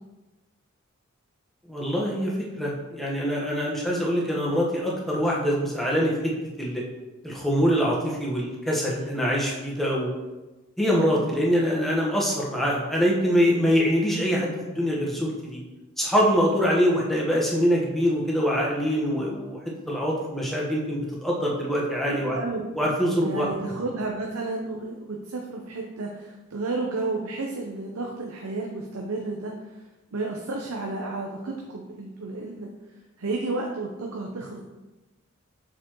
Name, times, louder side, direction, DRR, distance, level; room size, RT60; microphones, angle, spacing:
voice 1, 1.7-6.3 6.6-6.8 7.2-10.1 10.8-15.6 16.0-19.6 19.9-22.3 22.7-23.5, equal, ahead, -4 dB, 1.1 m, -24 dB
voice 2, 22.1-22.6 23.2-29.5 30.1-32.7 33.2-34.6, right 3 dB, 85° right, 0 dB, 0.7 m, -32 dB
6.8 x 4.9 x 3.0 m, 1.1 s
head